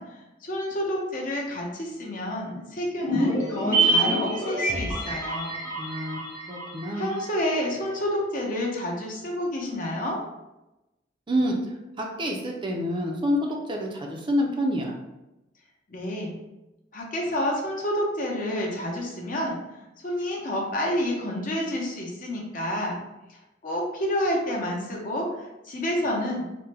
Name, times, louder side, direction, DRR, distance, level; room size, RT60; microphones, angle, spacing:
voice 1, 0.0-5.6 7.0-10.2 15.9-16.3 16.9-19.6 20.0-23.0 23.3-26.5, left 1 dB, 45° left, -2 dB, 0.7 m, -29 dB
sound 1, 3.0-7.5 7.7-7.8, right 2 dB, 15° left, 0.9 m, -26 dB
voice 2, 5.8-6.2 6.5-7.1 11.3-11.6 12.0-14.9, equal, 25° right, 0 dB, 0.4 m, -27 dB
3.3 x 2.1 x 3.3 m, 0.98 s
head